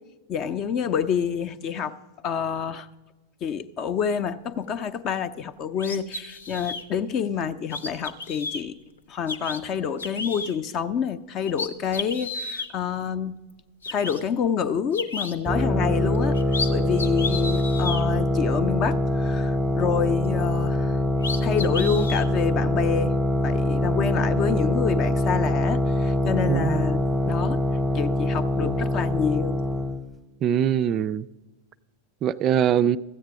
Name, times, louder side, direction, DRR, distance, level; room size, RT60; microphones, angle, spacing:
voice 1, 0.3-1.9 2.2-2.9 3.4-8.8 9.1-13.4 13.9-16.4 16.7-21.0 21.4-23.1 23.4-27.6 27.9-29.6, left 7 dB, 35° left, 15 dB, 0.6 m, -28 dB
sound 1, 5.8-6.8 7.7-8.6 9.3-9.6 10.0-10.5 11.1-11.2 11.4-12.7 13.5-13.6 13.8-14.2 14.9-15.3 16.2-16.7 17.0-18.0 20.8-20.9 21.2-22.3, left 3 dB, 70° left, 0.9 m, -32 dB
sound 2, 15.5-30.0, left 1 dB, 5° right, 0.9 m, -24 dB
voice 2, 26.5-26.8 28.6-28.8 30.4-31.3 32.2-33.0, right 9 dB, 30° right, 14 dB, 0.3 m, -22 dB
14.0 x 8.1 x 6.0 m, 1.1 s
figure-of-eight pair, 90°, 0 cm